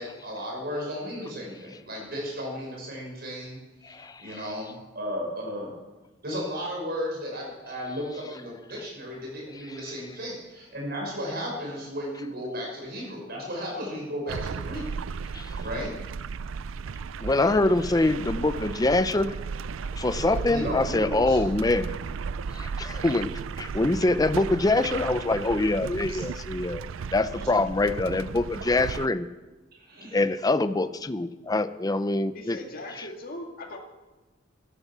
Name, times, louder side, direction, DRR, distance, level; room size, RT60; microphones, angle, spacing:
voice 1, 0.0-3.6 3.9-5.7 6.2-14.8 15.6-15.9 20.5-21.4 26.1-26.2 29.8-30.3, equal, 55° right, -1 dB, 6.3 m, -34 dB
voice 2, 3.8-4.4 15.3-15.5 17.2-19.3 20.0-21.9 22.5-23.3 23.6-26.8 27.1-29.3 30.1-32.6, left 2 dB, 20° left, 12 dB, 0.5 m, -24 dB
sound 1, 14.3-29.1, right 5 dB, 90° right, 0.4 m, -35 dB
voice 3, 32.3-33.8, left 1 dB, 50° left, 1 dB, 2.2 m, -39 dB
14.5 x 12.0 x 7.4 m, 1.2 s
head